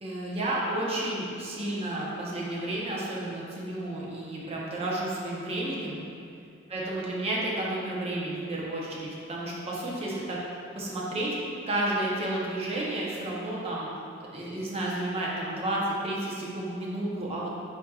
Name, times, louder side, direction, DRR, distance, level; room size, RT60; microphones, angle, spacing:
voice 1, 0.0-6.0 6.7-10.4 10.7-11.3 11.7-13.9 14.3-17.5, right 1 dB, 30° right, -5 dB, 0.7 m, -31 dB
4.7 x 4.1 x 2.3 m, 2.4 s
head